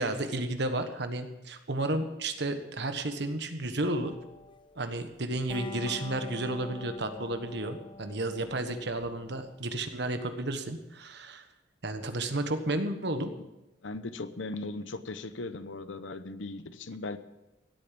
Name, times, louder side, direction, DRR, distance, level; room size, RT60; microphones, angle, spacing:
voice 1, 0.0-4.2 4.8-11.4 11.8-13.3, right 2 dB, 60° right, 8 dB, 1.4 m, -32 dB
sound 1, 4.0-9.5, left 2 dB, 25° left, 1.0 m, -46 dB
voice 2, 13.8-17.2, left 2 dB, 85° left, 12 dB, 0.9 m, -38 dB
16.5 x 8.7 x 7.5 m, 0.98 s
head